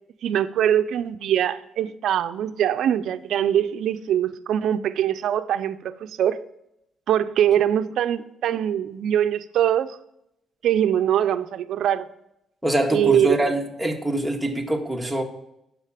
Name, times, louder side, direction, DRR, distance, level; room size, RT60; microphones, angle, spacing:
voice 1, 0.2-6.4 7.1-10.0 10.6-12.1 12.9-13.5, right 10 dB, 75° right, 11 dB, 0.5 m, -22 dB
voice 2, 12.6-15.2, right 1 dB, 5° right, 2 dB, 1.7 m, -24 dB
9.7 x 7.5 x 5.0 m, 0.82 s
cardioid pair, 90°, 0 cm